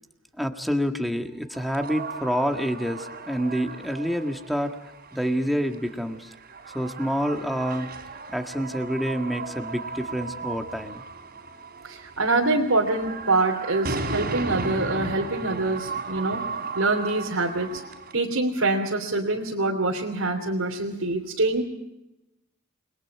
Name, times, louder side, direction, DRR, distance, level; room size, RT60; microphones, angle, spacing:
voice 1, 0.4-4.7 5.1-6.3 6.7-7.9 8.3-11.0, equal, ahead, 4 dB, 1.8 m, -27 dB
sound 1, 1.5-18.1, right 3 dB, 45° right, 3.6 m, -36 dB
voice 2, 11.8-16.4 16.7-17.8 18.1-21.6, right 2 dB, 75° right, -2 dB, 3.2 m, -25 dB
29.0 x 22.5 x 4.8 m, 0.94 s
head